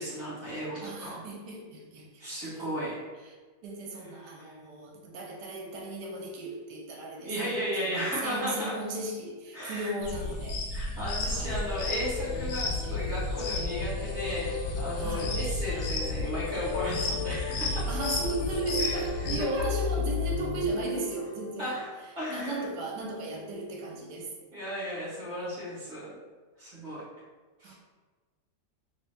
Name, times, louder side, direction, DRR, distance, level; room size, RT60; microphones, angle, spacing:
voice 1, 0.0-1.2 2.2-3.0 4.1-4.6 7.2-8.8 9.5-9.9 10.7-17.9 18.8-19.7 21.6-21.9 22.2-22.6 24.5-26.1 26.6-27.0 27.6-27.7, equal, 40° right, -7 dB, 1.1 m, -35 dB
voice 2, 0.8-2.0 3.6-10.6 11.3-11.6 15.0-15.4 17.9-21.7 22.3-24.3 27.6-27.7, right 2 dB, 80° right, 0 dB, 1.2 m, -35 dB
sound 1, 10.0-19.4, left 4 dB, 65° left, 0.9 m, -34 dB
sound 2, 11.5-21.5, left 4 dB, 85° left, 1.2 m, -35 dB
2.9 x 2.8 x 3.4 m, 1.4 s
omnidirectional pair, 1.8 m